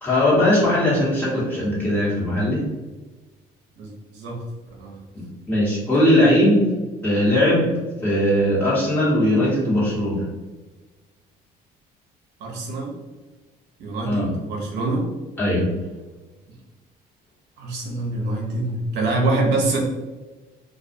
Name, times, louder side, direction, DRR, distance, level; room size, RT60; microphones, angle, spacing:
voice 1, 0.0-2.6 5.1-6.6 7.0-7.7 8.0-10.3 14.0-14.3 15.4-15.7, left 1 dB, 10° left, -9 dB, 1.2 m, -19 dB
voice 2, 3.8-4.4 4.8-5.0 12.4-12.9 13.8-15.1 17.6-19.8, right 2 dB, 80° right, -1 dB, 0.6 m, -25 dB
2.3 x 2.0 x 2.6 m, 1.3 s
cardioid pair, 110°, 17 cm